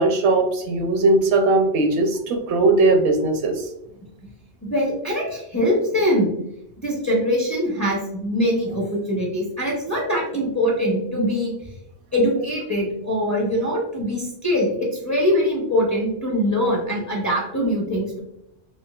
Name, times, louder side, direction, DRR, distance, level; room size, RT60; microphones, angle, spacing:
voice 1, 0.0-3.6, right 2 dB, 75° right, 5 dB, 0.8 m, -19 dB
voice 2, 4.6-6.3 6.8-11.5 12.1-18.2, equal, 20° left, -3 dB, 0.5 m, -22 dB
3.6 x 2.4 x 2.3 m, 0.82 s
omnidirectional pair, 1.2 m